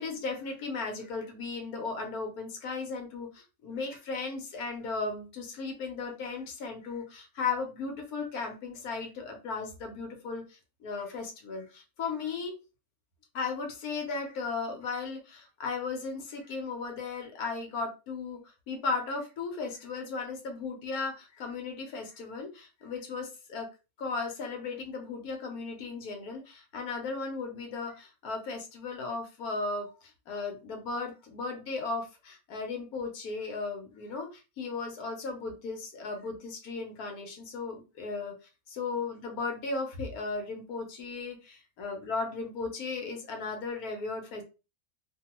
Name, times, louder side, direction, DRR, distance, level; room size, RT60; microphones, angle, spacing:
voice 1, 0.0-12.5 13.3-18.4 18.7-23.7 24.0-38.3 38.7-44.4, left 4 dB, 85° left, 3 dB, 1.3 m, -36 dB
2.8 x 2.3 x 2.9 m, 0.30 s
omnidirectional pair, 1.5 m